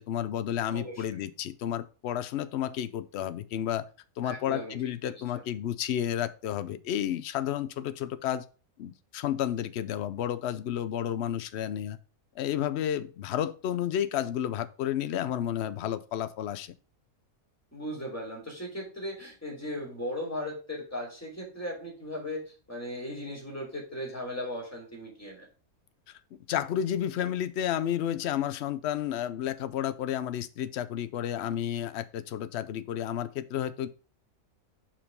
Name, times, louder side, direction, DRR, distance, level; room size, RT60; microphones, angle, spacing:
voice 1, 0.0-3.8 4.2-8.4 8.8-12.0 12.4-16.7 26.5-33.9, left 10 dB, 65° left, 14 dB, 0.7 m, -31 dB
voice 2, 0.7-1.0 4.2-4.7 5.0-5.1 17.7-25.5, left 1 dB, 10° left, -2 dB, 3.2 m, -37 dB
5.9 x 5.0 x 5.1 m, 0.37 s
omnidirectional pair, 1.5 m